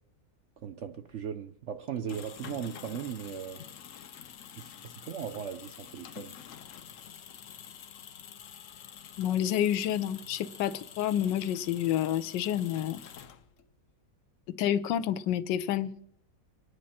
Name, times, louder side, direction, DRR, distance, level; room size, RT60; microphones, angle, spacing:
voice 1, 0.6-3.6 4.6-6.4, right 8 dB, 70° right, 0.7 m, -38 dB
sound 1, 1.9-13.7, left 8 dB, 55° left, 0.9 m, -48 dB
voice 2, 9.2-13.0 14.5-16.0, left 10 dB, 75° left, 1.4 m, -29 dB
25.5 x 9.7 x 4.3 m
omnidirectional pair, 2.0 m